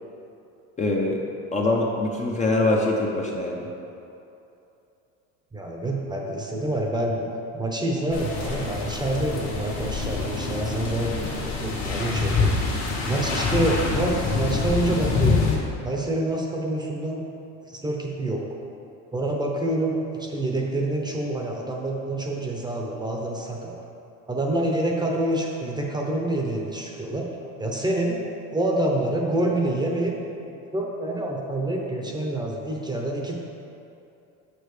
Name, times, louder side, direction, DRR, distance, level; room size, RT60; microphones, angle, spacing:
voice 1, 0.8-1.2 1.5-3.7, left 2 dB, 20° left, -1 dB, 0.7 m, -23 dB
voice 2, 5.5-7.3 7.5-12.5 13.0-15.5 15.8-17.2 17.6-18.4 19.1-23.8 24.3-27.3 27.6-28.2 28.5-30.2 30.5-33.4, right 1 dB, 15° right, -1 dB, 0.8 m, -27 dB
sound 1, 8.1-15.6, left 4 dB, 50° left, 1.6 m, -26 dB
6.9 x 6.2 x 3.3 m, 2.7 s
supercardioid pair, 110°, 33 cm